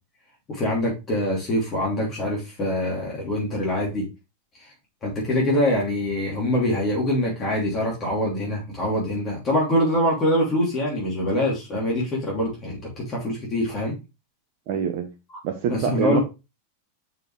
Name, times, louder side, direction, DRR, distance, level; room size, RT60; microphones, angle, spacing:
voice 1, 0.5-4.0 4.6-4.7 5.0-13.9 15.7-16.2, left 1 dB, 25° left, 2.9 m, -24 dB
voice 2, 14.7-15.1 15.4-16.2, right 8 dB, 45° right, 0.9 m, -25 dB
6.6 x 5.1 x 3.2 m
figure-of-eight pair, 90°, 0 cm